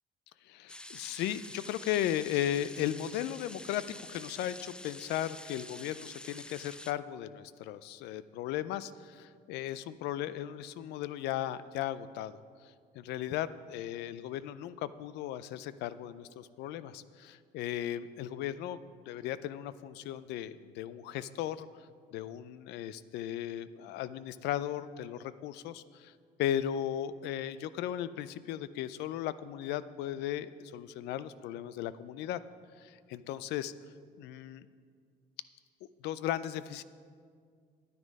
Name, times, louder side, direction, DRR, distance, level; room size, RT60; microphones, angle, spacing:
voice 1, 0.4-3.8 4.1-18.8 19.1-26.1 26.4-32.4 32.8-33.7 34.2-34.7 36.0-36.8, left 11 dB, 85° left, 15 dB, 0.4 m, -36 dB
sound 1, 0.7-6.9, left 1 dB, 5° left, 0.3 m, -47 dB
9.7 x 9.6 x 5.2 m, 2.1 s
cardioid pair, 110°, 17 cm